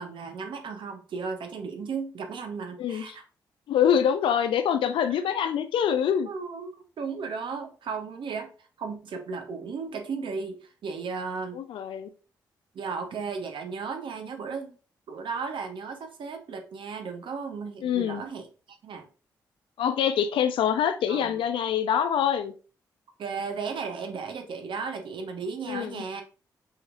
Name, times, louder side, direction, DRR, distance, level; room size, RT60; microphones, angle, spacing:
voice 1, 0.0-3.2 6.3-6.7 7.0-8.5 8.8-11.6 12.7-14.8 15.1-19.1 21.1-21.4 23.2-26.2, right 5 dB, 70° right, 0.8 m, -35 dB
voice 2, 3.7-6.3 11.5-12.1 17.8-18.2 19.8-22.5 25.7-26.0, left 8 dB, 80° left, 0.5 m, -25 dB
5.5 x 3.1 x 2.5 m
hypercardioid pair, 40°, 9 cm